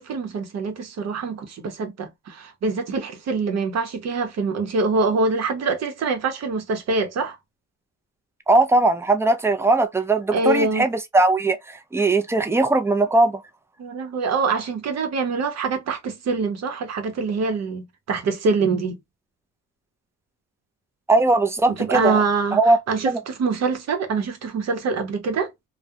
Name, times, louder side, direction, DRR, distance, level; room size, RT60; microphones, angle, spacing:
voice 1, 0.0-7.4 10.3-10.9 13.8-19.0 21.7-22.6 22.9-25.5, right 4 dB, 60° right, 0.8 m, -24 dB
voice 2, 8.5-13.4 21.1-22.2 22.5-22.8 23.1-23.2, right 2 dB, 10° right, 0.4 m, -19 dB
2.3 x 2.1 x 2.6 m
cardioid pair, 90°, 30 cm